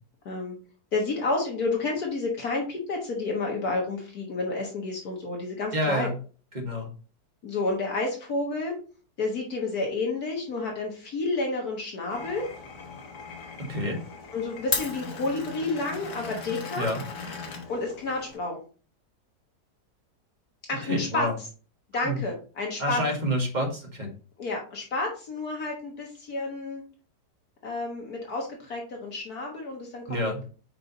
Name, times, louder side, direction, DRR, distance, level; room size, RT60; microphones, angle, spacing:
voice 1, 0.3-0.6 0.9-6.1 7.4-8.7 9.2-12.5 14.3-16.9 17.7-18.6 20.7-21.3 21.9-23.0 24.4-26.8 27.6-30.2, left 3 dB, 65° left, 0 dB, 1.8 m, -30 dB
voice 2, 5.7-6.2 6.5-6.9 13.7-14.0 16.8-17.0 20.8-21.3 22.0-22.2 22.8-24.1 30.1-30.4, equal, 30° right, 0 dB, 1.8 m, -28 dB
Glass, 12.1-18.4, left 5 dB, 85° left, 1.8 m, -37 dB
5.5 x 5.2 x 4.0 m, 0.37 s
omnidirectional pair, 1.7 m